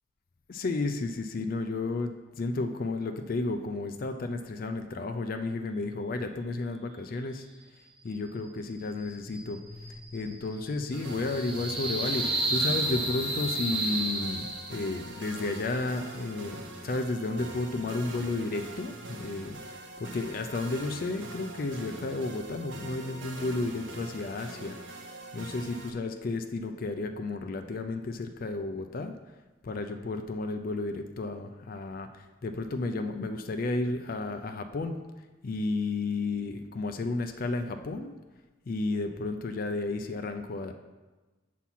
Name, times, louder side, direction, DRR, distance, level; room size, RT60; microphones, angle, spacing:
voice 1, 0.5-7.5 8.0-9.6 10.1-24.8 25.3-29.2 29.6-35.0 35.4-38.2 38.7-40.7, left 3 dB, 45° left, 6 dB, 0.4 m, -32 dB
sound 1, 9.0-15.0, right 2 dB, 25° right, 1.0 m, -32 dB
sound 2, 10.9-25.9, right 2 dB, 65° right, 0.8 m, -43 dB
7.1 x 4.2 x 5.7 m, 1.2 s
head